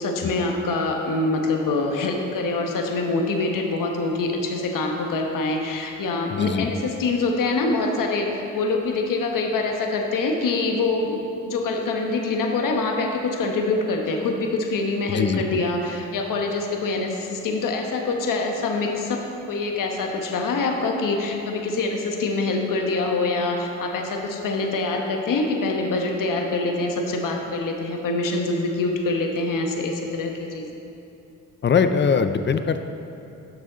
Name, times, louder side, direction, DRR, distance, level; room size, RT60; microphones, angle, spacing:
voice 1, 0.0-11.2 11.5-30.7, left 3 dB, 80° left, 2 dB, 1.1 m, -25 dB
voice 2, 6.3-6.7 15.1-15.4 31.6-32.8, left 6 dB, 35° left, 9 dB, 0.5 m, -21 dB
11.5 x 6.4 x 3.9 m, 2.8 s
cardioid pair, 85°, 32 cm